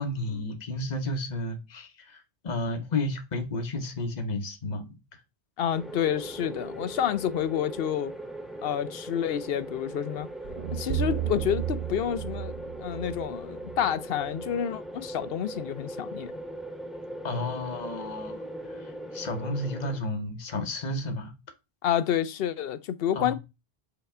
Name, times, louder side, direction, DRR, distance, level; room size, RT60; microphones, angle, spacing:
voice 1, 0.0-5.0 17.2-18.4 18.7-21.3 23.1-23.3, left 2 dB, 45° left, 1.1 m, -32 dB
voice 2, 5.6-8.1 8.6-10.3 10.7-12.5 12.8-16.3 21.8-23.3, left 9 dB, 65° left, 0.8 m, -29 dB
sound 1, 5.7-20.0, right 1 dB, ahead, 0.6 m, -40 dB
sound 2, 10.4-14.6, right 10 dB, 75° right, 0.9 m, -34 dB
5.8 x 4.1 x 4.3 m
omnidirectional pair, 1.1 m